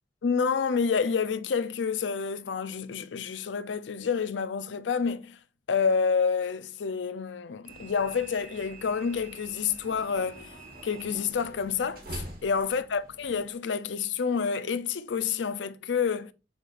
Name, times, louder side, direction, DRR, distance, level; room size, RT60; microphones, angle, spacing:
voice 1, 0.2-5.4 5.7-10.5 10.8-16.3, left 6 dB, 80° left, 0.5 m, -28 dB
sound 1, 7.7-13.5, right 2 dB, 50° right, 1.6 m, -45 dB
7.9 x 4.9 x 2.5 m
head